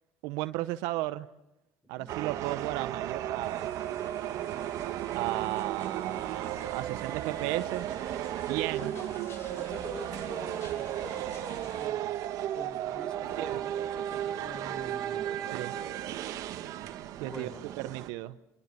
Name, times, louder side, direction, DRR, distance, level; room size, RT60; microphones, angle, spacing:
voice 1, 0.2-1.3 1.9-3.9 5.1-7.9 8.5-8.9 13.2-13.6 15.5-15.7 17.2-17.5 17.8-18.4, right 17 dB, 80° right, 0.9 m, -34 dB
sound 1, 2.1-18.1, right 12 dB, 65° right, 1.6 m, -34 dB
sound 2, 3.4-11.9, left 5 dB, 45° left, 3.2 m, -54 dB
voice 2, 8.7-9.1 9.6-12.0 12.5-15.4 17.2-17.6, left 1 dB, 10° left, 4.3 m, -45 dB
26.5 x 25.5 x 6.9 m
supercardioid pair, 95°, 6 cm